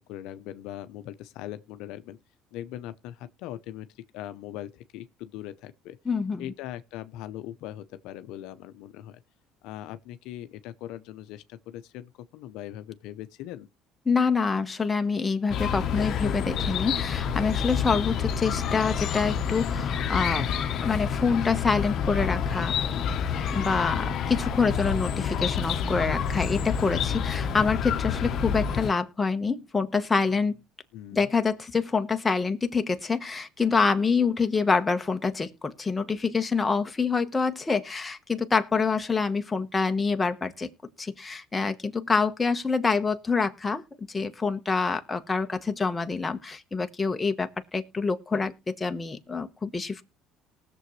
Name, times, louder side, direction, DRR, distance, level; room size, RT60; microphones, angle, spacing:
voice 1, 0.0-2.2 2.5-6.0 6.4-9.2 9.6-13.7 30.9-31.3, left 13 dB, 75° left, 0.7 m, -40 dB
voice 2, 6.0-6.5 14.1-20.5 20.8-22.7 23.5-30.6 31.1-40.7 41.0-43.8 44.1-50.0, left 4 dB, 15° left, 1.2 m, -26 dB
Chirp tweet, 15.5-28.9, left 7 dB, 55° left, 1.0 m, -28 dB
19.5 x 6.9 x 3.2 m
cardioid pair, 105°, 0 cm